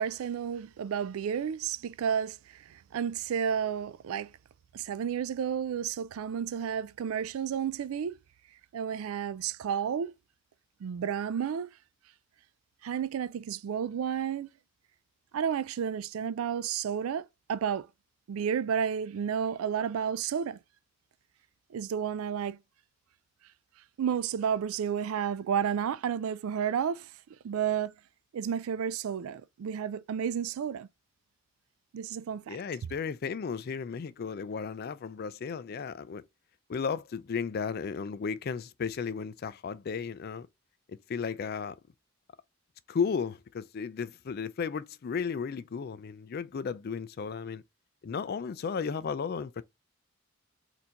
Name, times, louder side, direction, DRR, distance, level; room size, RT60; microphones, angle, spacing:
voice 1, 0.0-4.3 4.7-8.1 8.7-10.1 10.8-11.7 12.8-14.5 15.3-17.2 17.5-17.9 18.3-20.6 21.7-22.6 24.0-27.1 27.4-27.9 28.3-30.9 31.9-32.6, right 8 dB, 85° right, 0.3 m, -31 dB
voice 2, 32.5-36.2 36.7-40.5 40.9-41.8 42.9-47.6 48.0-49.6, left 6 dB, 45° left, 0.3 m, -34 dB
4.4 x 2.7 x 3.7 m
head